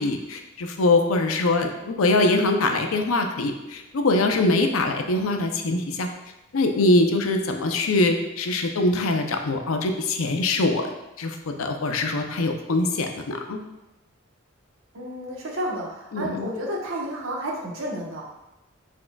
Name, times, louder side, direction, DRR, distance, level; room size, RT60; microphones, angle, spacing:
voice 1, 0.0-6.1 6.5-13.6 16.1-16.5, left 2 dB, 85° left, 4 dB, 0.6 m, -23 dB
voice 2, 14.9-18.2, equal, 70° right, -2 dB, 1.0 m, -31 dB
5.9 x 3.7 x 2.3 m, 0.95 s
head